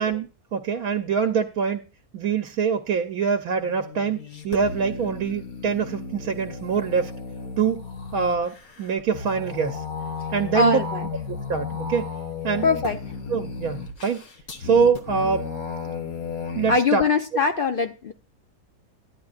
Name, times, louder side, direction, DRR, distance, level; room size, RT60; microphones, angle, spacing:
voice 1, 0.0-1.8 2.1-7.1 7.6-7.8 8.1-9.8 10.3-10.8 11.3-12.1 12.4-12.7 13.3-14.2 14.6-15.5 16.5-17.0, right 6 dB, 80° right, 1.2 m, -24 dB
sound 1, 3.5-16.8, left 5 dB, 75° left, 1.9 m, -34 dB
voice 2, 10.5-11.1 12.6-13.0 16.7-18.1, left 4 dB, 55° left, 0.6 m, -22 dB
13.0 x 10.5 x 2.4 m
omnidirectional pair, 1.5 m